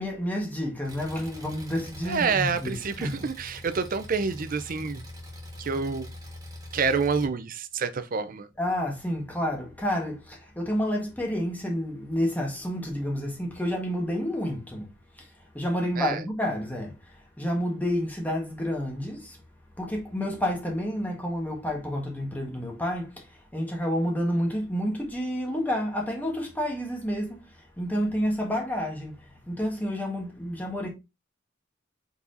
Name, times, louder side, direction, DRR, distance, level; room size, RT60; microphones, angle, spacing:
voice 1, 0.0-2.7 3.0-3.1 8.6-14.9 15.2-15.3 15.5-19.4 19.8-30.9, equal, 10° left, 1.3 m, -29 dB
Engine, 0.8-7.2, left 1 dB, 20° right, 1.4 m, -43 dB
voice 2, 2.0-5.0 5.6-6.1 6.7-8.5 16.0-16.2, right 5 dB, 45° right, 0.5 m, -28 dB
4.7 x 4.1 x 2.6 m
head